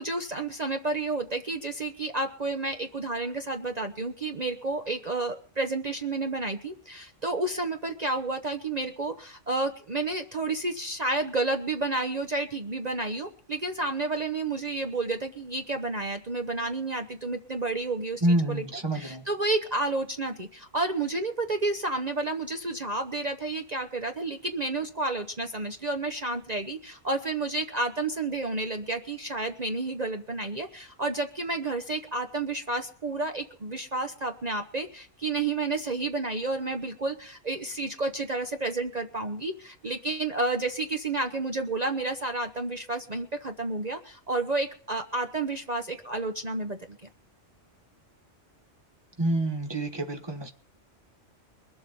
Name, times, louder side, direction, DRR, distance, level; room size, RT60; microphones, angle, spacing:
voice 1, 0.0-18.6 18.9-47.0, right 2 dB, 35° right, 1.0 m, -31 dB
voice 2, 18.2-19.3 49.2-50.5, right 1 dB, 20° right, 1.4 m, -27 dB
22.5 x 7.7 x 5.4 m
omnidirectional pair, 1.2 m